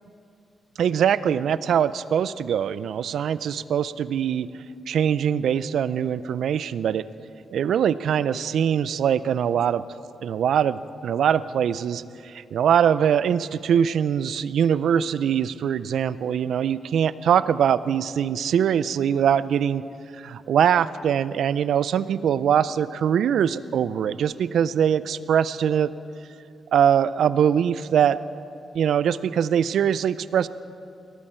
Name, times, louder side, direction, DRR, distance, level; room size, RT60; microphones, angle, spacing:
voice 1, 0.8-4.5 4.9-7.0 7.5-9.8 10.2-19.8 20.2-25.9 26.7-28.2 28.7-30.5, right 8 dB, 80° right, 17 dB, 0.4 m, -22 dB
19.5 x 13.5 x 4.4 m, 2.5 s
cardioid pair, 85°, 0 cm